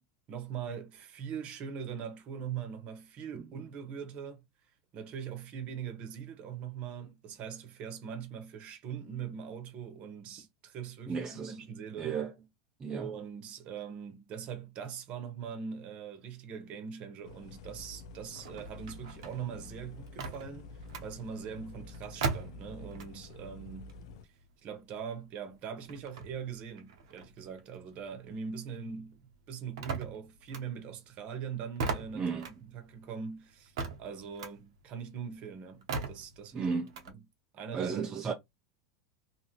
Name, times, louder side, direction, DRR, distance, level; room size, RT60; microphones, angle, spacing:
voice 1, 0.3-4.4 4.9-12.2 12.9-23.9 24.6-29.2 29.5-32.4 32.7-36.7 37.1-37.2 37.5-38.0, right 7 dB, 45° right, 1.0 m, -42 dB
voice 2, 11.1-11.6 12.0-12.3 12.8-13.1 32.1-32.5 36.5-37.0 37.7-38.3, right 5 dB, 25° right, 0.5 m, -34 dB
sound 1, 17.2-24.2, left 3 dB, 70° left, 0.4 m, -49 dB
sound 2, 18.3-23.4 23.7-28.6 28.9-37.1, right 4 dB, 75° right, 0.8 m, -40 dB
2.8 x 2.5 x 3.0 m
hypercardioid pair, 110°, 3 cm